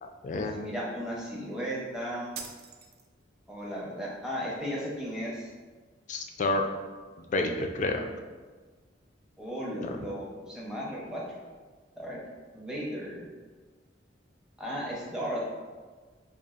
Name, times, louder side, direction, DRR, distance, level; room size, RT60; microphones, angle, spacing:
voice 1, 0.0-0.5 6.1-6.6 7.2-8.1 9.8-10.0, left 2 dB, 40° left, 4 dB, 0.3 m, -30 dB
voice 2, 0.5-2.3 3.5-5.5 9.4-11.2 12.0-12.2 12.5-13.3 14.6-15.4, equal, 5° right, -6 dB, 0.7 m, -35 dB
sound 1, 2.3-3.4, right 6 dB, 55° right, 0.4 m, -43 dB
5.2 x 2.4 x 2.4 m, 1.4 s
head